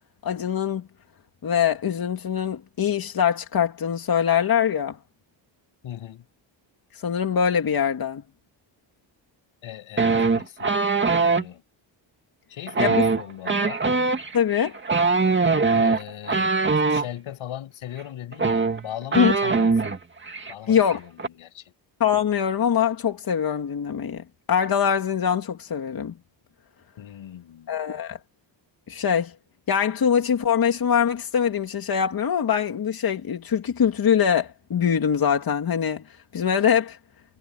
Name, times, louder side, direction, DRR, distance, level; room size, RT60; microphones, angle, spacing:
voice 1, 0.2-0.8 1.4-5.0 6.9-8.2 12.8-13.0 14.3-14.8 19.2-19.3 20.7-21.0 22.0-26.1 27.7-28.2 28.9-29.3 29.7-36.0 36.3-37.0, left 8 dB, 50° left, 2.5 m, -23 dB
voice 2, 5.8-6.3 9.6-11.0 11.3-11.6 12.5-13.8 15.7-16.6 16.9-20.0 20.5-21.7 27.0-27.7, left 11 dB, 90° left, 7.6 m, -38 dB
sound 1, 10.0-11.4 12.7-17.1 18.0-18.1 18.3-20.0 20.3-20.5 20.8-21.3, right 4 dB, 25° right, 2.4 m, -22 dB
cardioid pair, 140°, 47 cm